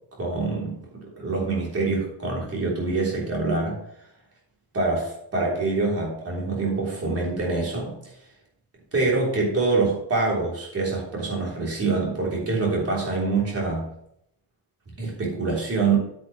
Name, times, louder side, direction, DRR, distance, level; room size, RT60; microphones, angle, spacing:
voice 1, 0.2-0.8 1.2-3.8 4.7-8.0 8.9-13.9 15.0-16.0, right 3 dB, 30° right, -3 dB, 3.4 m, -25 dB
9.2 x 9.2 x 3.2 m, 0.73 s
cardioid pair, 175°, 48 cm